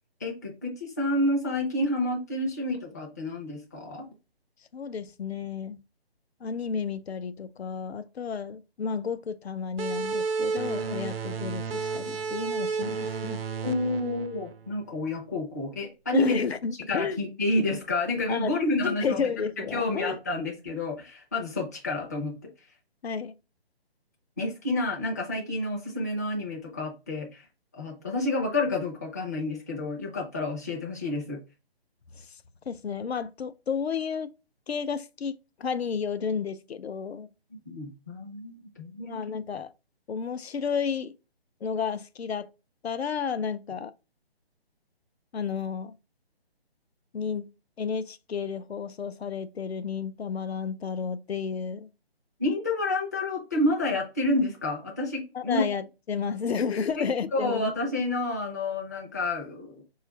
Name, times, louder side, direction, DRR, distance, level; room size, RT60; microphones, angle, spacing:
voice 1, 0.2-4.1 13.6-16.4 16.9-19.3 19.6-22.4 24.4-27.4 27.7-31.4 37.7-39.2 52.4-55.7 57.0-59.7, left 2 dB, 15° left, 0.4 m, -29 dB
voice 2, 4.7-5.8 6.4-13.4 16.1-17.2 18.3-20.2 23.0-23.3 32.1-32.3 32.7-34.3 34.7-37.3 39.0-39.7 40.1-41.1 41.6-42.5 42.8-43.9 45.3-45.9 47.1-47.5 47.8-51.9 55.3-55.8 56.1-57.7, left 6 dB, 80° left, 0.5 m, -32 dB
sound 1, 9.8-15.1, right 4 dB, 65° right, 0.5 m, -32 dB
4.7 x 2.4 x 3.0 m
figure-of-eight pair, 150°, 31 cm